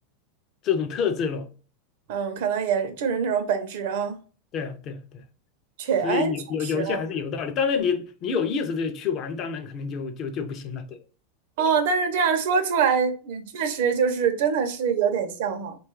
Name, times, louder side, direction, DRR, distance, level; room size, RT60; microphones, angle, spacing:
voice 1, 0.6-1.5 4.5-5.2 6.0-11.0, left 6 dB, 30° left, 0.4 m, -27 dB
voice 2, 2.1-4.2 5.8-6.3 6.7-7.0 11.6-15.8, right 6 dB, 65° right, 0.6 m, -24 dB
3.0 x 2.2 x 3.0 m
supercardioid pair, 160°, 0 cm